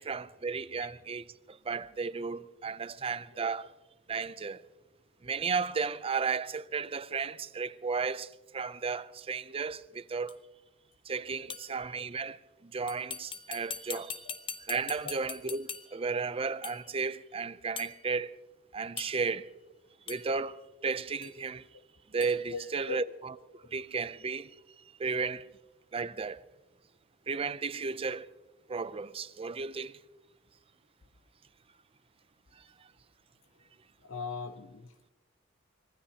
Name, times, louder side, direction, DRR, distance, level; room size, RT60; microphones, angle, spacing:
voice 1, 0.0-3.7 4.1-4.6 5.2-10.4 11.1-14.1 14.7-18.3 18.7-19.5 20.1-21.7 22.1-23.0 23.5-24.5 25.0-25.5 25.9-26.4 27.3-28.3 28.7-30.0, right 5 dB, 30° right, 0.5 m, -34 dB
sound 1, 10.3-10.4 11.5-11.8 12.9-16.1 16.6-16.9 17.8-18.0 19.0-19.4 20.1-20.3 21.2-21.4 22.2-22.4, left 6 dB, 25° left, 0.8 m, -42 dB
voice 2, 13.9-14.3 15.0-15.1 22.5-23.1 34.0-35.1, left 4 dB, 75° left, 0.8 m, -41 dB
25.0 x 19.5 x 2.9 m
head